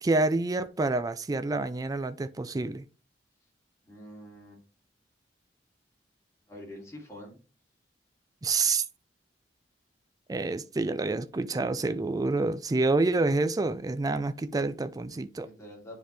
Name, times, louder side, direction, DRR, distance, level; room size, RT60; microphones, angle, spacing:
voice 1, 0.0-2.8 8.4-8.8 10.3-15.5, right 3 dB, 20° right, 0.3 m, -28 dB
voice 2, 3.8-4.6 6.5-7.4 15.4-16.0, left 1 dB, 15° left, 2.5 m, -46 dB
10.0 x 3.5 x 3.2 m
head